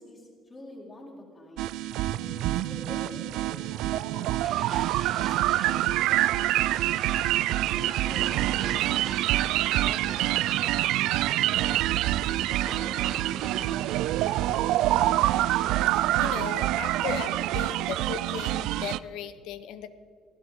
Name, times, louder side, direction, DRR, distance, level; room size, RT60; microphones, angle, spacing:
voice 1, 0.0-1.7 2.1-4.8 5.1-6.8 7.7-9.3 9.8-11.8 12.2-13.9, left 1 dB, 25° left, -5 dB, 4.2 m, -46 dB
sound 1, 1.6-19.0, right 15 dB, 80° right, 0.3 m, -26 dB
sound 2, 4.4-17.5, right 5 dB, 30° right, 0.8 m, -44 dB
voice 2, 15.8-19.9, left 9 dB, 80° left, 12 dB, 0.9 m, -37 dB
19.0 x 16.5 x 3.7 m, 2.2 s
cardioid pair, 160°, 0 cm